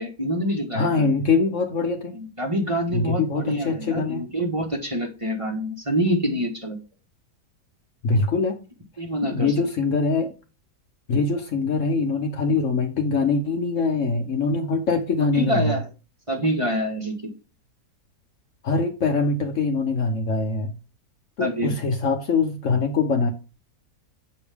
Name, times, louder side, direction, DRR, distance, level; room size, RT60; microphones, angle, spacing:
voice 1, 0.0-1.1 2.1-6.8 9.0-9.5 15.3-15.9 16.3-17.1 21.4-21.7, equal, 20° right, 1.4 m, -26 dB
voice 2, 0.7-2.2 2.9-4.2 8.0-8.6 9.2-10.3 11.1-15.8 18.6-20.7 21.4-23.3, left 4 dB, 55° left, 1.2 m, -23 dB
8.0 x 5.0 x 3.5 m
omnidirectional pair, 1.7 m